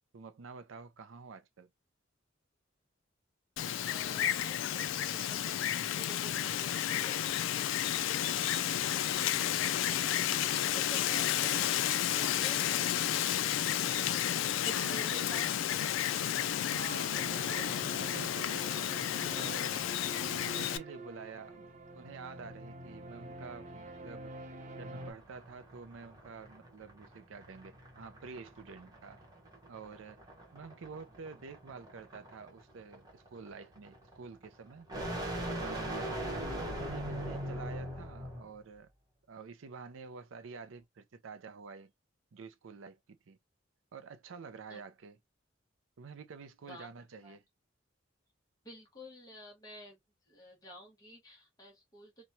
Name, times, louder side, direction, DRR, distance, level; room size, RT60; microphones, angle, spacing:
voice 1, 0.1-1.7 14.7-15.5 16.6-19.8 20.3-24.3 24.8-29.2 29.7-30.2 30.5-34.9 35.5-36.2 36.5-38.9 39.3-41.9 42.3-43.4 43.9-45.2 46.0-47.4, right 5 dB, 75° right, 0.5 m, -48 dB
Wind, 3.6-20.8, left 11 dB, 70° left, 0.3 m, -32 dB
voice 2, 3.8-5.7 5.9-7.3 8.6-12.9 14.6-15.5 44.7-44.8 46.6-46.9 47.2-47.4 48.6-50.0 50.3-52.3, equal, 20° left, 1.0 m, -50 dB
sound 1, 17.1-25.1, right 2 dB, 40° right, 0.7 m, -47 dB
sound 2, 25.0-38.5, right 1 dB, 20° right, 1.0 m, -41 dB
2.9 x 2.2 x 2.6 m
head